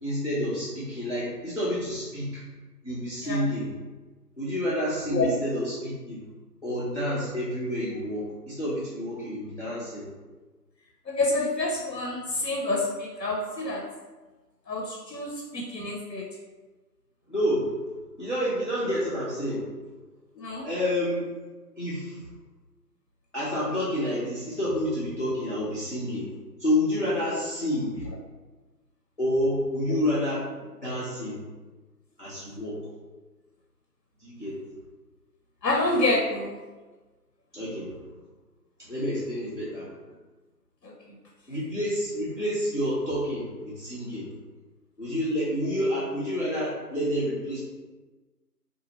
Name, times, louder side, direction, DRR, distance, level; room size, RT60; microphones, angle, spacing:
voice 1, 0.0-2.4 2.8-3.7 4.4-6.2 6.6-10.1 17.3-17.7 18.2-19.6 20.6-21.2 21.8-22.2 23.3-26.3 26.6-28.1 29.2-31.4 32.2-32.8 34.2-34.6 37.5-38.0 38.8-39.9 41.5-44.3 45.0-47.6, equal, 45° left, -9 dB, 0.5 m, -29 dB
voice 2, 11.1-13.8 14.7-16.2 20.4-20.6 29.9-30.0 35.6-36.6 40.8-41.2, left 2 dB, 85° left, -1 dB, 0.7 m, -28 dB
2.7 x 2.4 x 2.8 m, 1.2 s
figure-of-eight pair, 175°, 49 cm